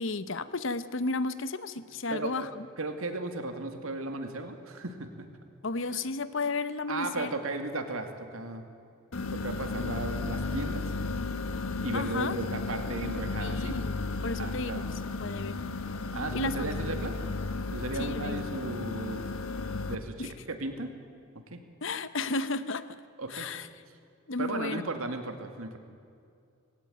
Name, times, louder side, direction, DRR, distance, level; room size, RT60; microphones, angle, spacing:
voice 1, 0.0-2.7 5.6-7.3 11.9-12.4 13.4-14.8 15.2-15.6 16.3-16.6 18.0-18.4 20.2-20.3 21.8-23.0 23.3-23.7 24.3-24.8, left 3 dB, 60° left, 14 dB, 0.9 m, -33 dB
voice 2, 2.1-2.5 2.8-5.1 5.9-6.0 6.9-8.6 9.3-10.9 11.8-13.8 14.3-14.9 16.1-17.2 17.7-19.3 19.9-20.9 21.5-21.6 23.2-23.5 24.4-25.8, right 2 dB, 75° right, 6 dB, 2.2 m, -35 dB
sound 1, 9.1-19.9, left 3 dB, 75° left, 1.3 m, -34 dB
19.5 x 17.5 x 9.3 m, 2.4 s
head